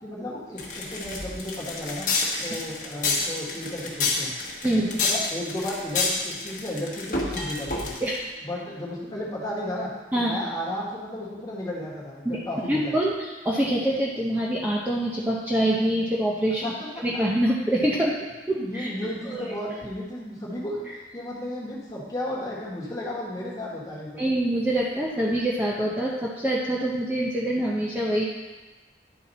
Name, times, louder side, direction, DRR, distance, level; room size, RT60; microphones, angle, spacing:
voice 1, 0.0-2.1 2.4-4.3 4.8-8.0 8.4-13.0 16.6-17.2 18.5-24.2, left 1 dB, 20° left, -5 dB, 1.5 m, -34 dB
sound 1, 0.6-8.2, left 3 dB, 45° left, 1.2 m, -28 dB
voice 2, 12.7-13.1 13.4-16.7 17.0-18.2 18.5-18.9 19.3-19.5 24.2-28.2, right 1 dB, 10° right, -5 dB, 0.7 m, -25 dB
10.5 x 4.4 x 4.1 m, 1.2 s
head